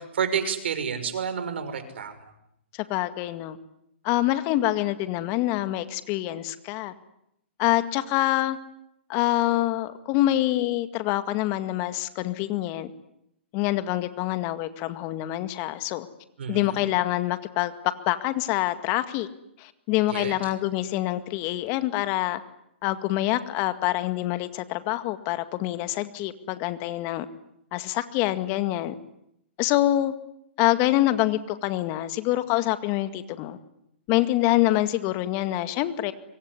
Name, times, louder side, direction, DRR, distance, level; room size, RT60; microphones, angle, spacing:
voice 1, 0.0-2.3 16.4-16.9 20.1-20.4, right 7 dB, 65° right, 10 dB, 5.9 m, -30 dB
voice 2, 2.7-3.6 4.0-6.9 7.6-8.6 9.1-12.9 13.5-16.1 16.5-17.7 18.1-19.3 19.6-22.4 22.8-27.3 27.7-29.0 29.6-30.1 30.6-33.6 34.1-36.1, left 15 dB, 35° left, 11 dB, 2.0 m, -26 dB
25.5 x 23.5 x 9.8 m, 0.78 s
hypercardioid pair, 125°, 6 cm